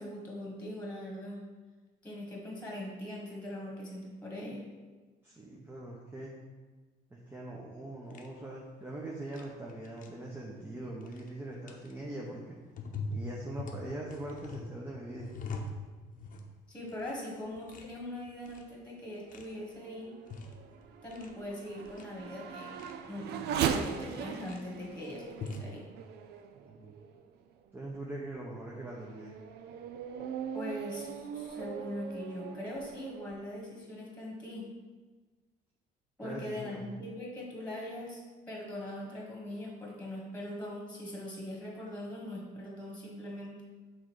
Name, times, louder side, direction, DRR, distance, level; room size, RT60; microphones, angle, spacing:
voice 1, 0.0-1.4 2.0-4.7 16.7-20.1 21.0-22.7 23.1-23.3 23.7-25.8 30.5-34.7 36.2-38.2 38.5-43.6, left 1 dB, 10° left, -2 dB, 1.6 m, -41 dB
voice 2, 5.2-6.4 7.1-12.6 13.1-15.4 26.6-27.0 27.7-29.4 36.2-36.9, right 1 dB, 15° right, -4 dB, 0.9 m, -42 dB
sound 1, 8.1-8.3 9.3-9.4 9.7-10.1 11.0-11.3 11.7-11.9 12.8-16.5 16.8-17.1 17.4-17.9 18.3-18.7 19.3-19.5 20.1-20.6 20.9-21.3 21.7-22.0 22.5-23.0 23.6-23.8 24.2-24.6 25.2-25.7, left 3 dB, 50° left, 0.8 m, -42 dB
Race car auto racing / Accelerating revving vroom, 19.3-27.3 27.9-28.0 28.6-33.3, right 8 dB, 75° right, 0.5 m, -39 dB
6.3 x 3.9 x 4.7 m, 1.3 s
cardioid pair, 110°, 17 cm